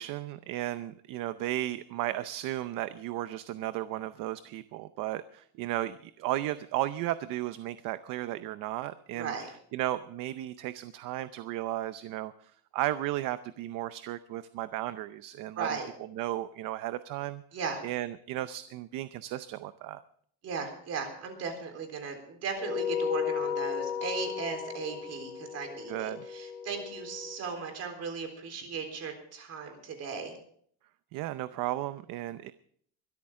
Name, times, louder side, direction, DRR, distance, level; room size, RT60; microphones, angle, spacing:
voice 1, 0.0-9.3 9.7-15.8 16.1-17.4 17.8-20.0 25.9-26.2 31.1-32.5, right 14 dB, 55° right, 13 dB, 0.7 m, -34 dB
voice 2, 9.1-9.5 15.6-15.9 17.5-17.8 20.4-30.4, right 5 dB, 40° right, 5 dB, 3.8 m, -37 dB
sound 1, 22.6-27.4, left 7 dB, 30° left, 1.1 m, -35 dB
22.5 x 13.0 x 3.7 m, 0.62 s
cardioid pair, 175°, 38 cm